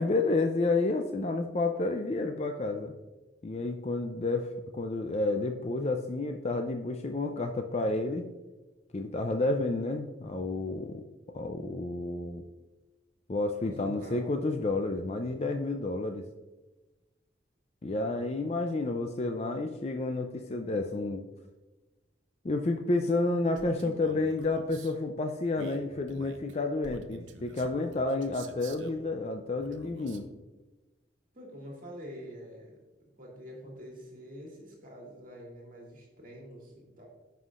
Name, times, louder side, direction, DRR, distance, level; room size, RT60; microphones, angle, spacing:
voice 1, 0.0-2.9 3.4-4.5 4.7-8.2 8.9-11.0 11.3-12.4 13.3-16.2 17.8-21.2 22.4-30.3, left 2 dB, 35° left, 5 dB, 0.4 m, -30 dB
voice 2, 13.6-14.3 31.3-32.8 33.2-37.1, equal, 45° right, -2 dB, 2.1 m, -46 dB
Male speech man speaking, 23.5-24.9 25.5-29.0 29.6-30.3, right 2 dB, 85° right, 0.8 m, -48 dB
14.5 x 5.7 x 2.5 m, 1.2 s
head